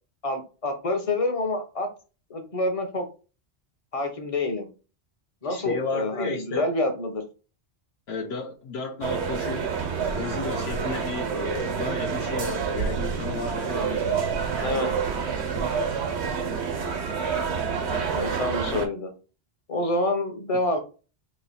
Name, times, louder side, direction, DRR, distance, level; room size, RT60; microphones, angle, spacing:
voice 1, 0.2-1.9 2.3-3.0 3.9-4.7 5.4-7.2 14.6-14.9 17.9-19.1 19.7-20.8, left 2 dB, 35° left, 0.8 m, -27 dB
voice 2, 5.4-6.7 8.1-9.7 10.1-14.2, left 4 dB, 75° left, 1.0 m, -33 dB
Mall Ambiance New, 9.0-18.9, right 6 dB, 85° right, 1.1 m, -28 dB
3.1 x 2.8 x 4.1 m
omnidirectional pair, 1.1 m